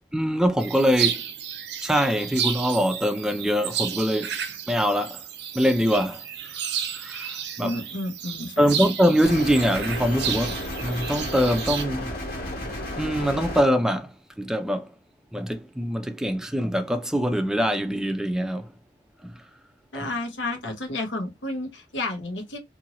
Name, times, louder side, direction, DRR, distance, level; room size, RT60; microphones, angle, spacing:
voice 1, 0.1-1.2 1.8-4.4 4.7-5.2 5.5-6.2 6.9-7.8 8.6-12.1 13.0-14.9 15.3-18.7 19.2-19.3 19.9-20.1, equal, 5° right, 0.4 m, -23 dB
sound 1, 0.6-11.8, right 9 dB, 65° right, 0.5 m, -32 dB
voice 2, 7.6-8.8 19.9-22.6, left 2 dB, 85° left, 1.1 m, -31 dB
sound 2, 9.2-13.6, left 1 dB, 55° left, 1.3 m, -33 dB
2.8 x 2.7 x 2.7 m
head